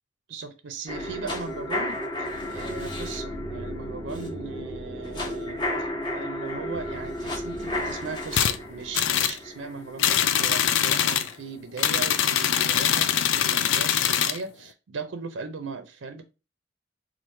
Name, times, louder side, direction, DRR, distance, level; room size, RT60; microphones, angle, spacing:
voice 1, 0.3-16.2, right 4 dB, 90° right, 8 dB, 0.5 m, -38 dB
sound 1, 0.9-10.9 11.3-11.4, left 1 dB, 25° left, 0.8 m, -33 dB
sound 2, 8.3-8.6 8.9-9.4 10.0-11.3 11.8-14.4, left 9 dB, 85° left, 0.4 m, -23 dB
3.0 x 2.4 x 4.3 m, 0.30 s
head